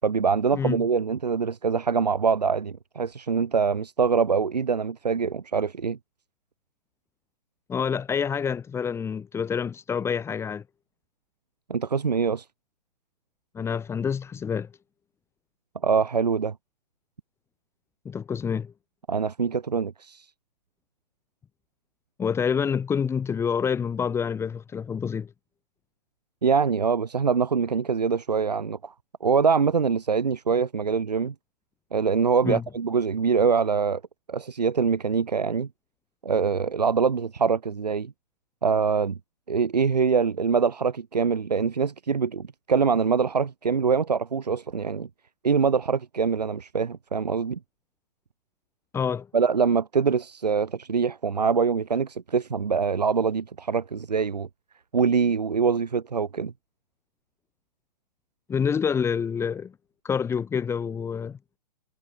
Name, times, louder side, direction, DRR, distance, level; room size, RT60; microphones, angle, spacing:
voice 1, 0.0-6.0 11.7-12.5 15.8-16.5 19.1-20.3 26.4-28.9 29.2-31.3 31.9-34.0 34.3-35.7 36.2-38.1 38.6-39.2 39.5-45.1 45.4-47.6 49.3-54.5 54.9-56.5, right 5 dB, 80° right, 6.3 m, -24 dB
voice 2, 7.7-10.6 13.5-14.7 18.0-18.7 22.2-25.3 32.4-32.6 48.9-49.3 58.5-59.7 60.0-61.4, left 7 dB, 10° left, 5.0 m, -27 dB
hypercardioid pair, 135°, 21 cm